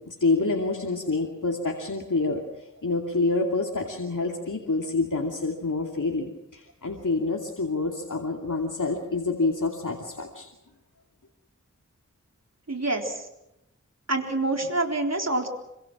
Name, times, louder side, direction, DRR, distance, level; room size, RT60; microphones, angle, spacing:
voice 1, 0.0-2.4 2.8-10.5, left 3 dB, 75° left, 0 dB, 2.7 m, -27 dB
voice 2, 12.7-13.2 14.1-15.5, right 2 dB, 55° right, 3 dB, 3.8 m, -26 dB
26.0 x 25.0 x 6.2 m, 0.87 s
wide cardioid pair, 40°, 31 cm